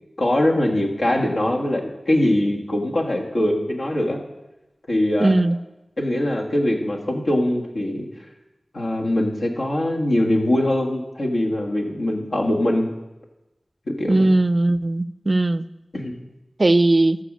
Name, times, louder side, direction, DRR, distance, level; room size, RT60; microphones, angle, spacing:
voice 1, 0.2-4.2 4.9-5.3 6.0-8.0 8.7-12.9 14.0-14.2 15.9-16.1, left 1 dB, 80° left, -1 dB, 1.7 m, -22 dB
voice 2, 5.2-5.6 14.1-15.6 16.6-17.2, right 2 dB, 50° right, 15 dB, 0.4 m, -18 dB
14.0 x 4.8 x 6.2 m, 1.0 s
wide cardioid pair, 55°, 0 cm